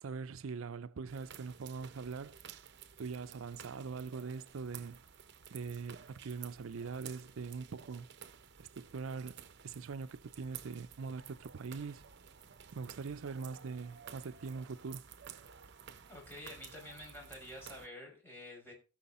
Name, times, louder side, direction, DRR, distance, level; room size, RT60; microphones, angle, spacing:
voice 1, 0.0-2.4 3.0-5.0 5.5-8.1 8.6-12.0 12.7-15.0, right 5 dB, 90° right, 0.5 m, -42 dB
sound 1, 1.1-17.9, right 8 dB, 60° right, 0.8 m, -53 dB
voice 2, 16.1-18.7, left 1 dB, 10° left, 6.3 m, -49 dB
17.0 x 6.3 x 4.2 m
head